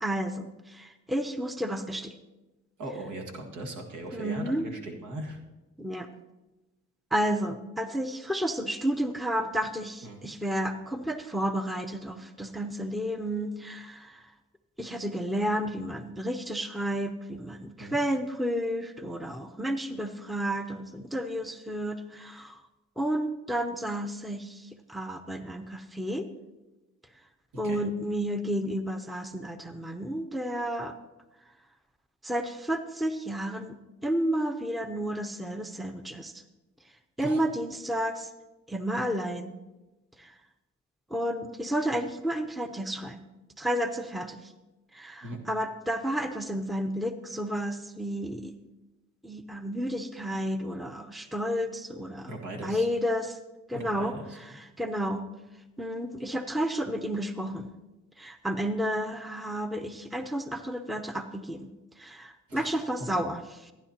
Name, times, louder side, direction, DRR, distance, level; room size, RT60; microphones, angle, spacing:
voice 1, 0.0-2.1 4.1-4.7 5.8-6.1 7.1-14.2 14.8-22.6 23.0-26.3 27.6-30.9 32.2-33.8 34.0-36.4 37.2-38.3 38.7-39.6 40.2-40.3 41.1-43.3 43.6-44.5 44.9-48.5 49.2-52.3 52.6-53.4 53.7-55.3 55.8-57.7 58.2-63.7, equal, ahead, 9 dB, 0.6 m, -31 dB
voice 2, 2.8-5.4 10.0-10.3 17.8-18.0 27.6-27.8 37.2-37.4 45.2-45.4 52.3-52.9 53.7-54.4 62.5-62.9, right 1 dB, 80° right, 2 dB, 1.9 m, -39 dB
14.5 x 10.0 x 2.8 m, 1.1 s
cardioid pair, 90°, 30 cm